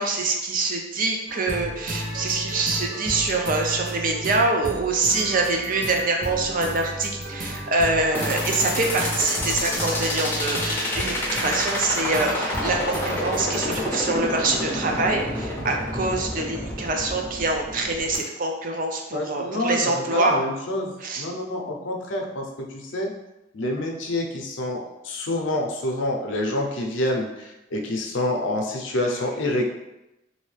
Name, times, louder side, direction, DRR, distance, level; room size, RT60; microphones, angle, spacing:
voice 1, 0.0-20.3 21.0-21.3, right 3 dB, 45° right, 2 dB, 0.5 m, -25 dB
sound 1, 1.3-13.8, right 1 dB, 70° right, 1.0 m, -34 dB
sound 2, 8.1-18.2, left 1 dB, 10° left, 0.6 m, -28 dB
voice 2, 19.1-22.5 22.7-23.1 23.5-29.6, left 1 dB, 80° left, 1 dB, 0.6 m, -27 dB
3.1 x 2.7 x 3.2 m, 0.93 s
head